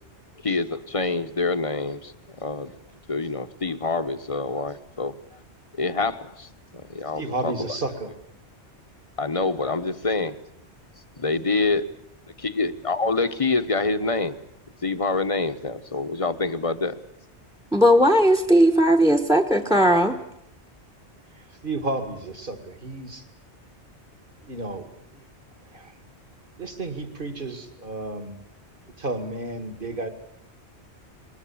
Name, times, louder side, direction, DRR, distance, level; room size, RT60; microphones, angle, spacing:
voice 1, 0.4-2.1 2.4-2.7 3.1-5.1 5.8-6.5 6.9-7.5 9.2-10.4 11.2-11.8 12.6-14.4 14.8-17.0, left 3 dB, 30° left, 10 dB, 1.2 m, -26 dB
voice 2, 7.2-8.1 21.3-23.3 24.4-24.9 25.1-25.2 25.7-25.9 26.6-28.4 29.0-30.1, right 2 dB, 50° right, 8 dB, 2.5 m, -32 dB
voice 3, 17.7-20.1, equal, 5° right, 8 dB, 1.3 m, -17 dB
21.5 x 20.0 x 8.7 m, 0.73 s
omnidirectional pair, 1.1 m